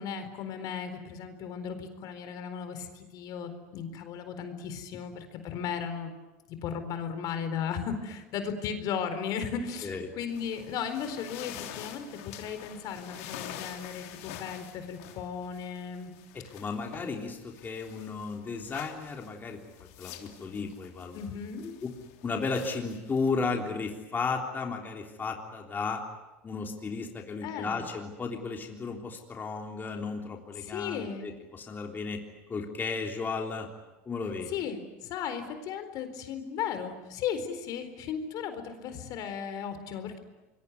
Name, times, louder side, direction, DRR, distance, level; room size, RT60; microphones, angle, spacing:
voice 1, 0.0-6.1 6.6-16.1 21.1-21.6 27.4-27.8 30.6-31.3 34.5-40.2, left 7 dB, 55° left, 9 dB, 4.2 m, -36 dB
sound 1, 10.3-24.0, left 11 dB, 80° left, 3.2 m, -47 dB
voice 2, 16.3-19.6 20.0-21.2 21.6-21.9 22.2-26.0 26.4-32.2 32.5-33.7 34.1-34.5, left 4 dB, 25° left, 2 dB, 3.5 m, -34 dB
26.0 x 22.5 x 9.6 m, 1.1 s
supercardioid pair, 105°, 8 cm